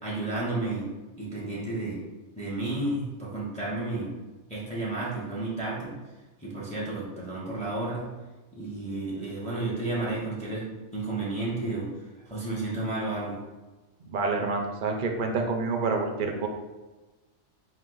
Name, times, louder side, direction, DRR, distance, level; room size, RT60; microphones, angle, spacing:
voice 1, 0.0-0.9 1.2-2.0 2.3-4.1 4.5-6.0 6.4-8.1 8.5-10.7 10.9-11.9 12.3-13.4, right 2 dB, 5° left, -5 dB, 0.9 m, -32 dB
voice 2, 14.1-16.5, right 4 dB, 55° right, 3 dB, 0.6 m, -28 dB
4.7 x 2.5 x 3.8 m, 1.2 s
omnidirectional pair, 1.3 m